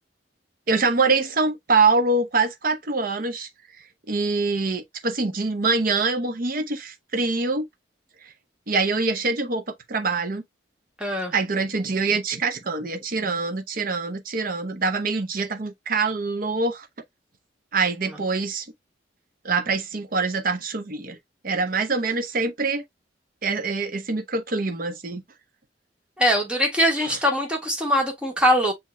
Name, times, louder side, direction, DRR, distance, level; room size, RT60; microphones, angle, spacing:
voice 1, 0.7-3.5 4.1-7.6 8.7-10.4 11.3-16.9 17.7-18.7 19.4-21.2 21.4-22.8 23.4-25.2 27.0-27.2, right 3 dB, 50° right, 0.8 m, -24 dB
voice 2, 11.0-11.3 26.2-28.7, equal, 5° right, 1.5 m, -22 dB
7.5 x 2.9 x 2.2 m
head